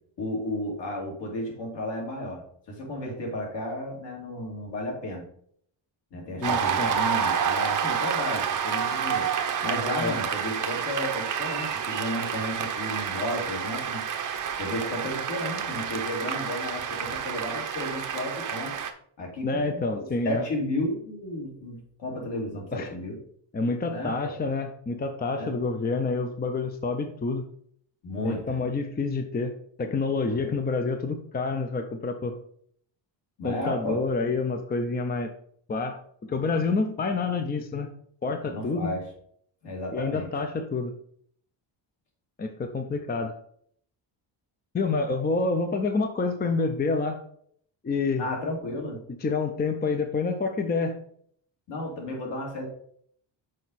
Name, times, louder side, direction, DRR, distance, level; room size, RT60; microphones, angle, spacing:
voice 1, 0.2-2.4 2.7-5.2 6.1-9.3 9.6-14.0 14.6-18.8 19.2-23.2 23.9-24.2 25.4-25.6 28.0-28.6 30.3-30.5 33.4-34.0 38.5-39.0 39.6-40.3 48.2-49.0 51.7-52.7, left 1 dB, 65° left, -1 dB, 2.9 m, -33 dB
voice 2, 6.4-6.9 10.0-10.2 19.4-20.4 22.7-22.9 23.5-27.5 28.2-32.3 33.4-35.3 35.7-36.0 36.3-37.9 38.2-38.9 39.9-40.9 42.4-43.3 44.7-47.2 47.8-48.3 49.2-51.0, left 3 dB, 20° left, 6 dB, 0.5 m, -28 dB
Cheering / Applause, 6.4-18.9, right 7 dB, 45° right, 0.7 m, -29 dB
6.4 x 5.2 x 4.2 m, 0.63 s
cardioid pair, 140°, 46 cm